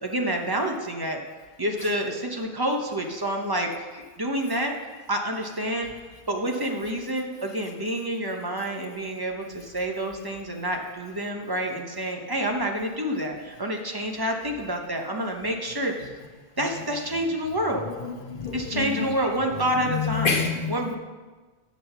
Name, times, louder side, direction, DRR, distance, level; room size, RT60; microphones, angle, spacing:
voice 1, 0.0-1.2 1.6-3.7 4.2-4.7 5.1-5.9 6.3-15.9 16.6-17.8 18.5-20.3 20.7-20.9, right 1 dB, 25° right, 2 dB, 0.9 m, -28 dB
voice 2, 16.6-17.2 17.7-21.0, left 5 dB, 55° left, 0 dB, 1.3 m, -30 dB
8.3 x 6.3 x 5.7 m, 1.3 s
omnidirectional pair, 1.1 m